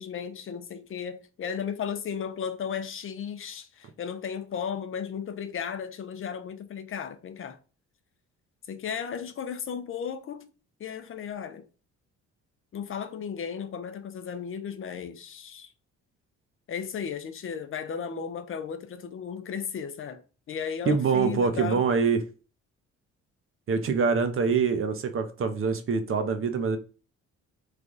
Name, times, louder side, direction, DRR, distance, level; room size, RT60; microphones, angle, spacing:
voice 1, 0.0-7.6 8.7-10.5 10.8-11.7 12.7-15.7 16.7-20.2 20.5-21.9, left 7 dB, 45° left, 0.5 m, -35 dB
voice 2, 20.9-22.2 23.7-26.8, right 5 dB, 45° right, 0.6 m, -25 dB
3.2 x 2.3 x 3.8 m
cardioid pair, 90°, 30 cm